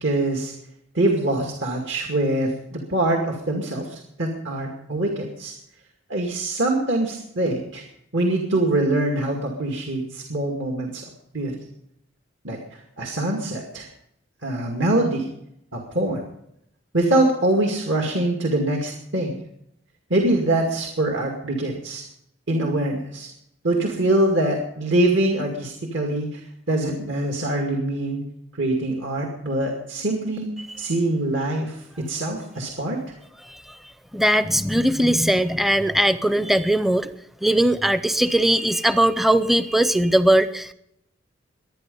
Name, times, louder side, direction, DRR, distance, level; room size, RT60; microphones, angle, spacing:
voice 1, 0.0-0.5 0.9-5.5 6.1-7.8 8.1-11.0 11.3-11.6 12.4-13.9 14.4-15.3 15.7-16.2 16.9-19.4 20.1-22.0 22.5-23.3 23.6-26.4 26.7-28.2 28.5-30.5 30.8-33.0, right 1 dB, 70° right, 1 dB, 2.2 m, -24 dB
voice 2, 34.1-37.1 37.4-40.7, right 1 dB, ahead, 12 dB, 0.5 m, -19 dB
22.5 x 9.8 x 5.4 m, 0.76 s
head